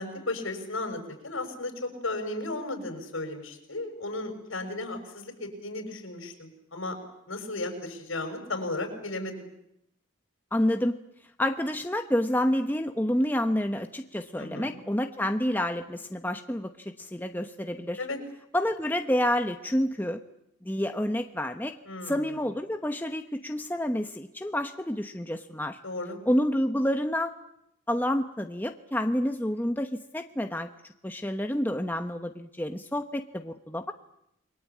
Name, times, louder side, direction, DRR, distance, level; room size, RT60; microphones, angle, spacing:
voice 1, 0.0-6.9 7.3-9.5 14.4-14.8 18.0-18.2 21.8-22.3 25.8-26.2, left 2 dB, 75° left, 5 dB, 6.4 m, -35 dB
voice 2, 10.5-11.0 11.4-18.0 18.5-20.2 20.6-21.7 22.0-25.8 26.3-27.3 27.9-30.7 31.0-33.9, left 1 dB, 10° left, 6 dB, 1.0 m, -28 dB
29.0 x 22.0 x 8.5 m, 0.78 s
head